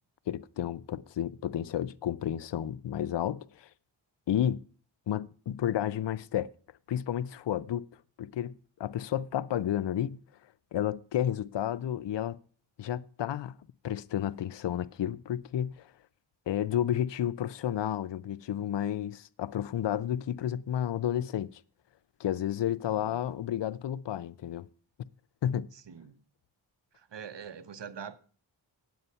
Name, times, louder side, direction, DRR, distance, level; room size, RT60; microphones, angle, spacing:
voice 1, 0.3-3.7 4.3-4.6 5.1-6.5 6.9-7.9 8.2-10.2 10.7-12.4 12.8-13.6 13.8-15.9 16.5-21.6 22.2-24.7 25.4-25.7, left 10 dB, 65° left, 0.6 m, -31 dB
voice 2, 27.1-28.2, right 7 dB, 60° right, 0.9 m, -43 dB
9.5 x 7.7 x 5.5 m
cardioid pair, 45°, 48 cm